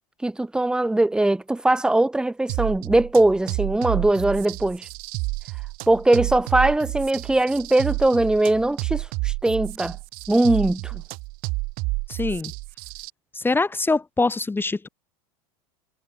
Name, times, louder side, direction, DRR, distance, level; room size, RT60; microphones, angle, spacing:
voice 1, 0.2-4.9 5.9-10.0 10.3-11.0, right 2 dB, 5° right, 0.7 m, -21 dB
sound 1, 2.5-13.1, right 27 dB, 55° right, 1.4 m, -30 dB
voice 2, 12.1-12.5 13.3-14.9, left 3 dB, 10° left, 2.9 m, -24 dB
supercardioid pair, 110°, 18 cm